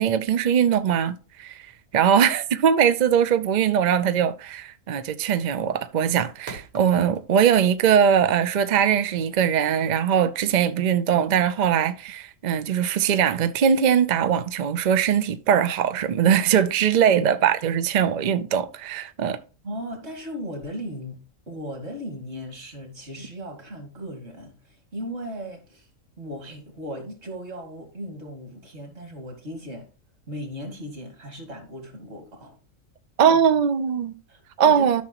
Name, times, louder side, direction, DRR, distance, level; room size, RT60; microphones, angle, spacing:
voice 1, 0.0-1.6 1.9-19.4 33.2-34.2 34.6-35.0, right 8 dB, 65° right, 0.4 m, -21 dB
sound 1, 1.2-7.7, right 3 dB, 85° right, 1.9 m, -46 dB
voice 2, 19.6-25.9 26.2-29.9 30.3-32.6 33.2-33.6 34.3-35.0, equal, 50° right, 2.6 m, -37 dB
12.5 x 5.9 x 2.9 m
omnidirectional pair, 1.5 m